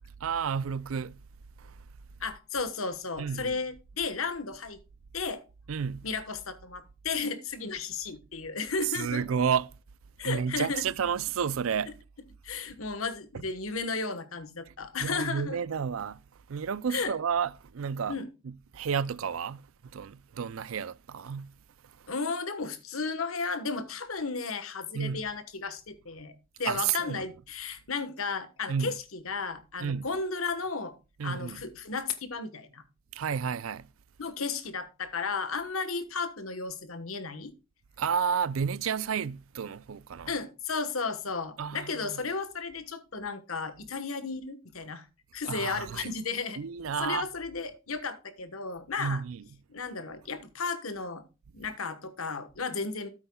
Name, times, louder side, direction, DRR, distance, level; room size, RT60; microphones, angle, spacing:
voice 1, 0.2-1.2 1.6-1.7 3.2-3.6 5.7-6.1 8.8-9.7 10.2-11.9 13.3-13.4 15.0-16.2 16.5-18.2 18.7-21.5 22.0-22.1 24.9-25.3 26.7-27.2 28.7-28.9 29.8-30.1 31.2-31.6 33.1-33.9 38.0-40.3 41.6-42.2 45.4-46.1 46.6-47.3 49.0-49.4, right 7 dB, 80° right, 0.5 m, -31 dB
voice 2, 2.2-4.8 5.1-5.4 6.0-9.2 10.2-10.8 12.4-15.6 16.9-17.1 18.1-18.3 22.1-26.3 26.6-30.9 31.2-32.8 34.2-37.5 40.3-45.1 45.3-46.6 47.0-49.2 49.7-51.2 51.5-53.1, left 4 dB, 90° left, 1.3 m, -34 dB
13.0 x 8.2 x 2.3 m
head